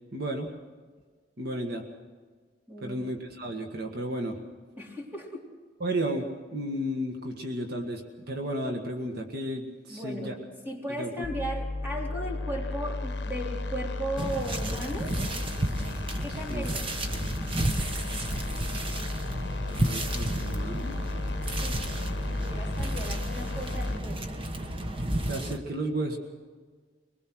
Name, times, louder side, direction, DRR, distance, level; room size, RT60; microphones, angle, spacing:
voice 1, 0.1-0.5 1.4-1.8 2.8-4.4 5.8-10.3 11.0-11.1 16.1-16.2 16.5-16.6 19.7-21.0 25.1-26.2, right 1 dB, 60° right, 2 dB, 1.7 m, -33 dB
voice 2, 2.7-3.0 4.8-5.5 9.9-10.3 10.6-15.2 16.2-16.9 21.6-21.9 22.3-24.2, right 1 dB, 10° right, -1 dB, 3.6 m, -36 dB
sound 1, 11.2-24.0, left 2 dB, 75° left, 0.9 m, -34 dB
sound 2, 14.2-25.6, right 1 dB, 30° right, 1.2 m, -32 dB
24.0 x 20.0 x 6.2 m, 1.5 s
head